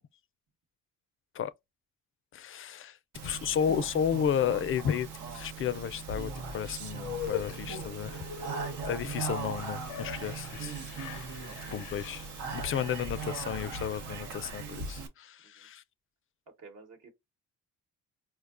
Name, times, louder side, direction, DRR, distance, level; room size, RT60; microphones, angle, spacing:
voice 1, 2.3-3.0 3.2-5.1 5.3-8.2 8.8-11.4 11.7-12.3 12.5-15.8, left 8 dB, 45° left, 0.4 m, -33 dB
Speech, 3.1-15.1, right 5 dB, 90° right, 0.8 m, -39 dB
sound 1, 6.9-14.3, left 10 dB, 85° left, 0.6 m, -43 dB
voice 2, 8.3-8.7 11.4-11.8 12.9-13.0 15.5-15.7 16.6-17.1, right 4 dB, 60° right, 1.1 m, -53 dB
4.5 x 2.2 x 2.4 m
cardioid pair, 90°, 30 cm